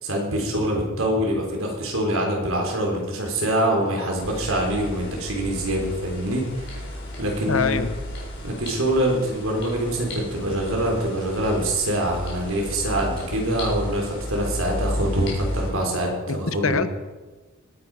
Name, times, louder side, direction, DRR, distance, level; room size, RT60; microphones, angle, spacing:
voice 1, 0.0-6.8 7.2-7.8 8.4-16.8, right 1 dB, 85° right, 0 dB, 4.0 m, -25 dB
sound 1, 4.2-15.7, left 1 dB, 60° left, 4.5 m, -33 dB
voice 2, 7.4-7.9 16.3-16.9, left 4 dB, 80° left, 12 dB, 1.0 m, -24 dB
19.5 x 9.9 x 5.0 m, 1.3 s
head